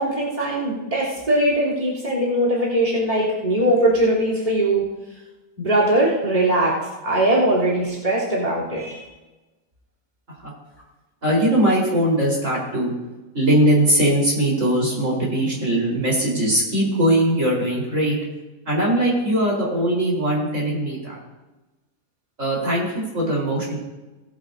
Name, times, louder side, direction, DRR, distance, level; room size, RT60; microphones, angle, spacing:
voice 1, 0.0-4.9 5.6-9.0, right 1 dB, 30° right, -6 dB, 3.4 m, -21 dB
voice 2, 11.2-12.9 13.3-18.2 18.7-21.2 22.4-23.8, right 1 dB, 60° right, -5 dB, 4.4 m, -20 dB
18.5 x 11.5 x 2.7 m, 1.1 s
omnidirectional pair, 1.5 m